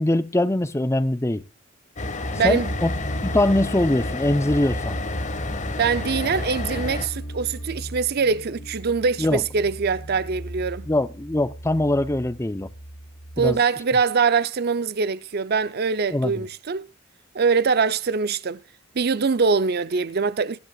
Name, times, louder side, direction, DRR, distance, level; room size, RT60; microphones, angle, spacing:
voice 1, 0.0-1.4 2.4-2.9 3.2-5.0 9.2-9.4 10.9-12.7 13.4-13.6 16.1-16.4, left 1 dB, 15° left, 0.6 m, -22 dB
sound 1, 2.0-13.6, equal, 90° left, 4.4 m, -37 dB
sound 2, 2.0-7.1, left 2 dB, 35° left, 1.6 m, -30 dB
voice 2, 2.3-2.7 5.8-10.9 13.4-16.9 17.3-18.6 18.9-20.6, right 5 dB, 50° right, 0.5 m, -23 dB
21.5 x 10.5 x 2.3 m
head